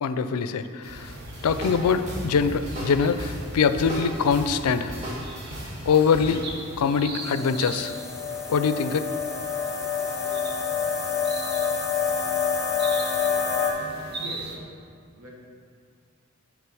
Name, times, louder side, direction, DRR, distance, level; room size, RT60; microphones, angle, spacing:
voice 1, 0.0-1.1 1.4-4.9 5.9-6.4 6.8-7.9 8.5-9.1, left 6 dB, 90° left, 11 dB, 0.4 m, -23 dB
sound 1, 0.8-14.6, right 2 dB, 50° right, 0.9 m, -40 dB
sound 2, 1.1-6.4, equal, 30° right, 1.4 m, -36 dB
sound 3, 7.2-13.7, left 6 dB, 15° left, 0.7 m, -27 dB
voice 2, 13.4-14.6 15.2-15.3, equal, 80° right, -2 dB, 1.4 m, -43 dB
9.0 x 3.7 x 6.1 m, 2.2 s
head